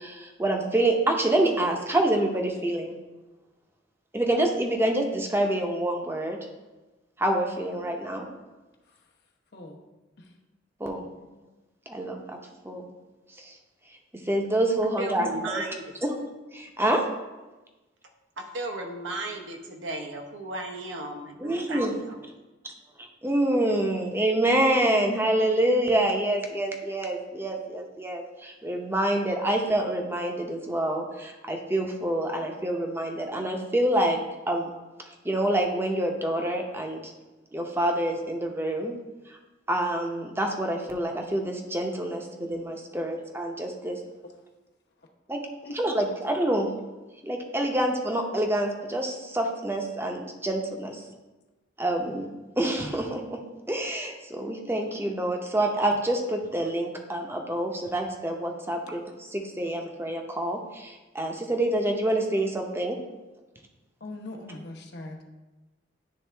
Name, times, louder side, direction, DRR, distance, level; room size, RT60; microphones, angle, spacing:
voice 1, 0.0-2.9 4.1-6.4 7.2-8.3 10.8-11.0 11.9-12.4 12.6-12.9 13.4-13.6 14.3-15.6 16.0-16.1 16.5-17.0 21.4-21.9 23.2-34.2 34.5-34.7 35.2-37.1 37.5-39.0 39.3-39.4 39.7-44.0 45.3-45.4 45.7-46.7 47.2-51.0 51.8-52.3 52.6-53.4 53.7-63.0, right 1 dB, 15° right, 2 dB, 0.7 m, -27 dB
voice 2, 7.8-8.2 9.5-9.8 10.2-10.3 11.2-11.3 42.9-43.0 44.2-44.3 45.6-45.8 46.1-46.2 50.9-51.0 64.0-65.2, left 2 dB, 60° left, 0 dB, 1.0 m, -42 dB
voice 3, 14.8-15.9 18.0-22.2, right 2 dB, 80° right, 3 dB, 0.9 m, -36 dB
10.5 x 3.6 x 3.3 m, 1.1 s
head